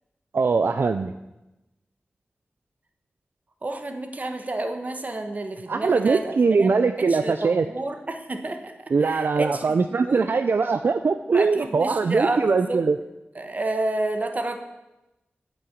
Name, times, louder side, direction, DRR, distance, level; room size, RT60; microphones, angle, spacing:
voice 1, 0.3-1.1 5.7-7.7 8.9-13.0, right 4 dB, 65° right, 9 dB, 0.4 m, -21 dB
voice 2, 3.6-6.3 6.6-8.7 9.0-10.2 11.3-12.8 13.3-14.6, right 2 dB, 40° right, 6 dB, 1.2 m, -30 dB
8.8 x 6.9 x 7.3 m, 0.99 s
wide cardioid pair, 80°, 4 cm